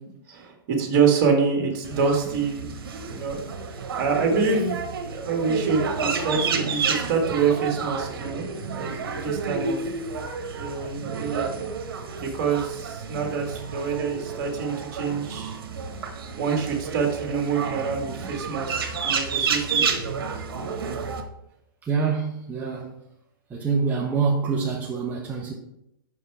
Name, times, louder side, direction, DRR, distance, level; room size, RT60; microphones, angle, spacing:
voice 1, 0.3-2.7 3.1-8.5 8.7-9.8 10.5-11.5 12.2-15.6 16.4-19.8, right 5 dB, 50° right, 1.9 m, -26 dB
sound 1, 1.8-21.2, right 5 dB, 80° right, 1.2 m, -30 dB
voice 2, 21.8-22.9 23.5-25.5, right 5 dB, 15° right, 0.8 m, -25 dB
5.7 x 5.5 x 4.7 m
hypercardioid pair, 140°, 12 cm